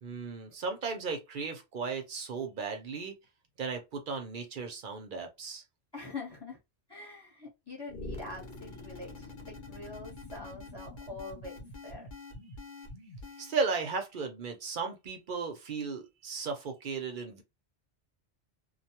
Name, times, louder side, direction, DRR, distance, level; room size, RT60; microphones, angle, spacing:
voice 1, 0.0-3.1 3.6-5.6 13.4-17.4, right 5 dB, 55° right, 0.7 m, -35 dB
voice 2, 5.9-6.6 6.9-12.1, left 3 dB, 25° left, 0.9 m, -44 dB
sound 1, 7.9-13.7, left 2 dB, 50° left, 0.9 m, -45 dB
2.3 x 2.2 x 2.8 m
omnidirectional pair, 1.1 m